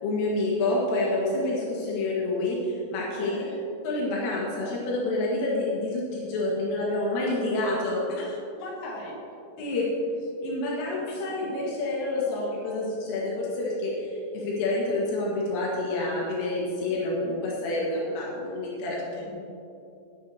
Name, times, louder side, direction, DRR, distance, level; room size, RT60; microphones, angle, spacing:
voice 1, 0.0-3.3 3.8-8.0 9.6-9.9 10.4-19.0, left 2 dB, 80° left, -5 dB, 4.3 m, -28 dB
voice 2, 3.2-3.6 8.1-9.4 11.1-11.3 18.8-19.4, left 2 dB, 65° left, -3 dB, 4.0 m, -40 dB
19.0 x 9.8 x 2.8 m, 2.7 s
omnidirectional pair, 5.7 m